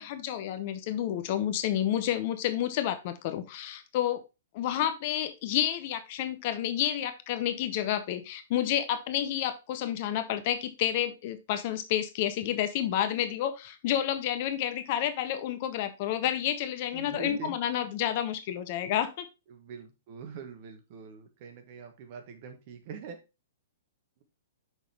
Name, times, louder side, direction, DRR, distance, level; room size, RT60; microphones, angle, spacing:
voice 1, 0.0-4.2 4.5-19.3, left 11 dB, 40° left, 11 dB, 0.8 m, -30 dB
voice 2, 16.9-17.6 19.5-23.2, right 6 dB, 40° right, 6 dB, 1.4 m, -43 dB
6.3 x 5.6 x 3.3 m, 0.27 s
figure-of-eight pair, 110°, 0 cm